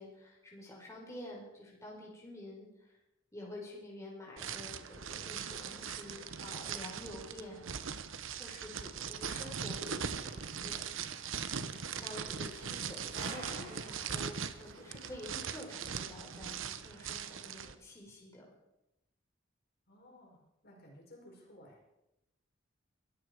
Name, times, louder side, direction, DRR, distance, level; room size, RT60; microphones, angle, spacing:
voice 1, 0.0-3.0 3.3-7.7 8.3-10.9 11.5-18.4, left 1 dB, 15° left, -2 dB, 4.2 m, -49 dB
sound 1, 4.4-17.7, right 7 dB, 85° right, 1.0 m, -40 dB
sound 2, 9.0-16.1, right 1 dB, 60° right, 6.7 m, -54 dB
voice 2, 19.9-21.8, left 1 dB, 55° left, 0 dB, 5.1 m, -57 dB
22.0 x 14.0 x 4.8 m, 0.92 s
head